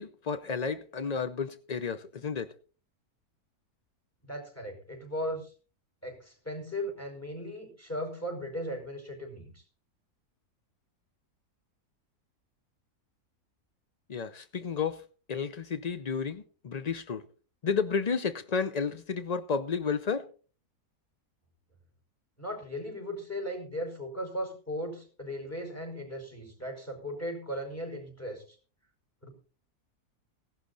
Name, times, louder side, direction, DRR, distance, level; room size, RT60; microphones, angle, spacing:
voice 1, 0.0-2.5 14.1-15.0 15.3-17.2 17.6-20.2, left 5 dB, 55° left, 0.4 m, -32 dB
voice 2, 4.2-5.5 6.0-9.6 22.4-28.6 29.2-29.3, equal, 10° left, 5.2 m, -37 dB
17.0 x 11.5 x 4.0 m
omnidirectional pair, 1.6 m